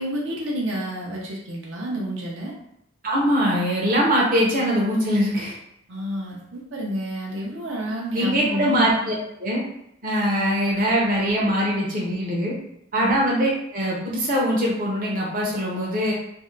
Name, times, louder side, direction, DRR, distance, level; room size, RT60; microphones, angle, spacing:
voice 1, 0.0-2.5 5.9-8.7 13.0-13.1, equal, 80° right, -2 dB, 0.7 m, -29 dB
voice 2, 3.0-5.5 8.1-9.6 10.0-12.6 12.9-16.1, equal, 45° right, -4 dB, 0.7 m, -22 dB
2.7 x 2.1 x 3.7 m, 0.78 s
head